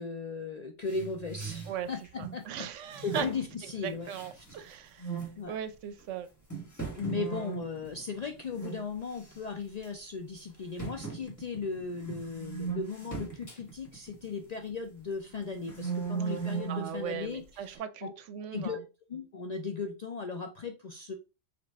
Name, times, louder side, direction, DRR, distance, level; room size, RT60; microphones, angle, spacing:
voice 1, 0.0-2.7 3.0-4.1 5.4-5.5 7.0-18.1 18.5-18.8 19.1-21.1, left 4 dB, 55° left, 0.4 m, -37 dB
sound 1, 0.9-2.4 2.9-4.6 5.0-5.4 6.0-6.1 6.5-8.8 9.1-9.5 9.8-9.9 10.8-14.8 15.3-16.9, right 5 dB, 15° left, 1.4 m, -38 dB
voice 2, 2.2-3.3 3.8-6.3 16.7-18.8, right 9 dB, 80° right, 0.9 m, -38 dB
5.1 x 2.5 x 3.5 m
omnidirectional pair, 1.3 m